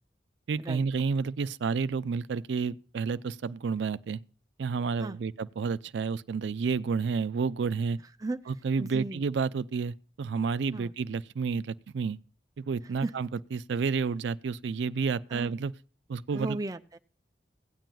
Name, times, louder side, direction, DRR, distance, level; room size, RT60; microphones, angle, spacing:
voice 1, 0.5-4.2 4.6-8.0 8.5-12.2 12.6-15.7 16.1-16.6, right 5 dB, 90° right, 0.4 m, -30 dB
voice 2, 8.8-9.2 10.7-10.9 13.0-13.1 15.3-15.5 16.3-17.0, right 2 dB, 20° right, 0.4 m, -35 dB
17.0 x 9.0 x 2.3 m
head